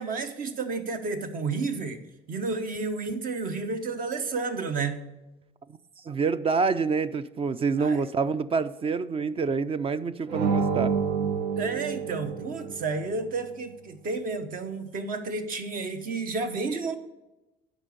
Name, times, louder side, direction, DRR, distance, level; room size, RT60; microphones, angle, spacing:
voice 1, 0.0-2.0 2.3-5.0 7.8-8.0 11.6-17.0, right 4 dB, 55° right, 1.1 m, -31 dB
voice 2, 6.0-11.0, right 5 dB, 35° right, 0.5 m, -27 dB
sound 1, 10.3-13.0, right 6 dB, 80° right, 1.0 m, -28 dB
9.0 x 5.1 x 6.8 m
cardioid pair, 110°, 17 cm